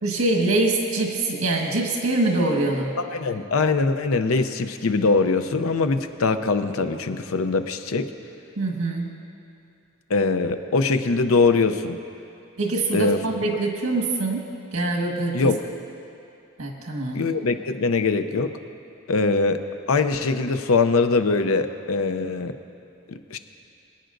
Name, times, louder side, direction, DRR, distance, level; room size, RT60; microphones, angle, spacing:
voice 1, 0.0-2.9 8.6-9.1 12.6-14.4 14.7-15.5 16.6-17.2, right 2 dB, 85° right, 0 dB, 1.6 m, -24 dB
voice 2, 3.1-8.1 10.1-12.0 12.9-13.2 15.3-15.6 17.1-18.5 19.1-19.6 19.9-22.5 23.1-23.4, left 4 dB, 75° left, 9 dB, 0.6 m, -22 dB
23.5 x 9.2 x 2.6 m, 2.6 s
head